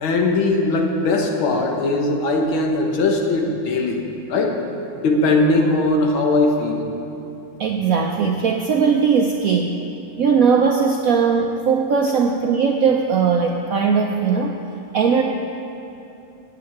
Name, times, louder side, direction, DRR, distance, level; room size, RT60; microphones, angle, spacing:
voice 1, 0.0-4.0 4.3-4.6 5.0-6.9, left 2 dB, 85° left, 2 dB, 2.0 m, -19 dB
voice 2, 7.6-9.7 10.2-14.5 14.9-15.2, right 6 dB, 75° right, 2 dB, 0.8 m, -19 dB
9.3 x 7.9 x 8.4 m, 2.9 s
omnidirectional pair, 2.2 m